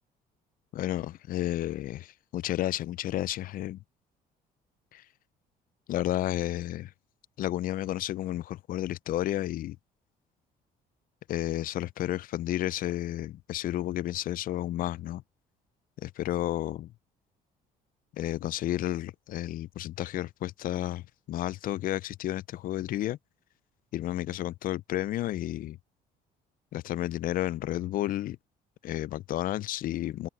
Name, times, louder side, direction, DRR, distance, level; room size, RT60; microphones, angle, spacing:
voice 1, 0.7-3.8 4.9-5.0 5.9-6.9 7.4-9.8 11.3-15.2 16.0-16.9 18.2-23.2 23.9-25.8 26.7-28.4 28.8-30.3, left 14 dB, 55° left, 0.4 m, -32 dB
cardioid pair, 110°, 17 cm